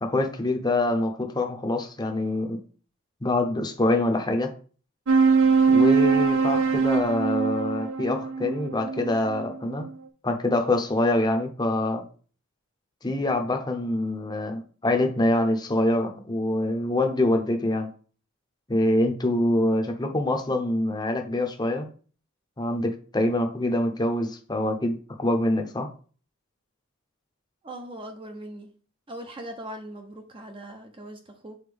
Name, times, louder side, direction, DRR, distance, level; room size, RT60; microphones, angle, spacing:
voice 1, 0.0-2.6 3.2-4.5 5.7-9.9 10.2-12.0 13.0-17.9 18.7-21.9 22.6-25.9, left 1 dB, 20° left, 0.7 m, -25 dB
sound 1, 5.1-9.9, right 5 dB, 60° right, 0.5 m, -22 dB
voice 2, 27.6-28.7 29.1-31.6, right 1 dB, 25° right, 0.6 m, -40 dB
7.0 x 4.2 x 3.4 m
head